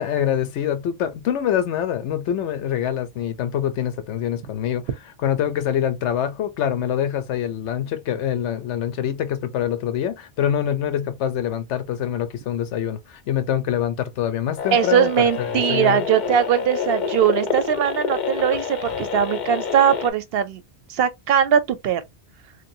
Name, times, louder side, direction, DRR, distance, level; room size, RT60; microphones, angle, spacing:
voice 1, 0.0-4.8 5.2-15.3 15.7-16.0, left 10 dB, 90° left, 0.9 m, -25 dB
sound 1, 14.6-20.1, left 6 dB, 55° left, 0.6 m, -27 dB
voice 2, 14.7-20.6 20.9-22.0, right 9 dB, 65° right, 0.7 m, -20 dB
3.2 x 2.6 x 2.6 m
omnidirectional pair, 1.1 m